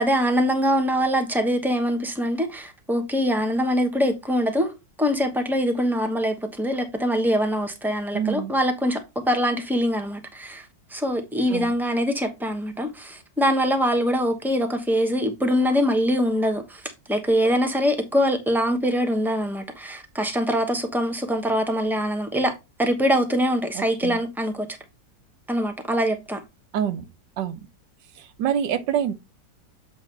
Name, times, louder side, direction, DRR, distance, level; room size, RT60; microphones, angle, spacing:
voice 1, 0.0-9.0 9.3-10.6 10.9-16.8 17.1-22.5 22.8-24.7 25.5-26.4, equal, ahead, 0.7 m, -23 dB
voice 2, 8.1-8.5 11.5-11.7 23.7-24.2 26.7-27.1 27.4-27.6 28.1-29.1, right 9 dB, 85° right, 1.5 m, -26 dB
8.2 x 2.8 x 5.3 m
omnidirectional pair, 1.9 m